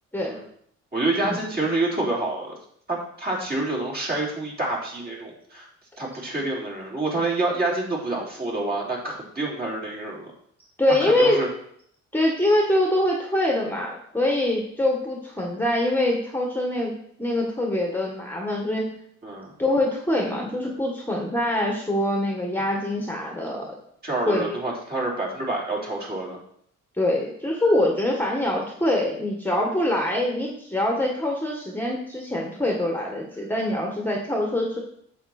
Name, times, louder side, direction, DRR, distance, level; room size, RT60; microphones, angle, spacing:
voice 1, 0.9-2.6 2.9-5.7 6.0-10.3 11.0-11.5 19.2-19.5 24.0-26.4, right 2 dB, 30° right, -3 dB, 3.9 m, -27 dB
voice 2, 10.8-11.4 12.1-16.9 17.2-18.9 19.6-23.8 24.3-24.5 27.0-34.8, left 1 dB, 5° left, 0 dB, 1.7 m, -24 dB
9.1 x 7.5 x 4.4 m, 0.67 s
cardioid pair, 90°, 30 cm